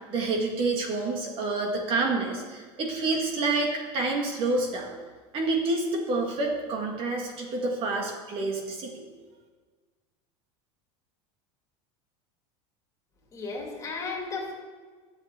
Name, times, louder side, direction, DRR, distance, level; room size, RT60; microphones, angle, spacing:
voice 1, 0.1-4.9 5.3-9.0, right 3 dB, 35° right, 1 dB, 2.0 m, -28 dB
voice 2, 13.3-14.5, left 4 dB, 20° left, -2 dB, 2.7 m, -34 dB
10.5 x 7.2 x 8.4 m, 1.5 s
supercardioid pair, 160°, 15 cm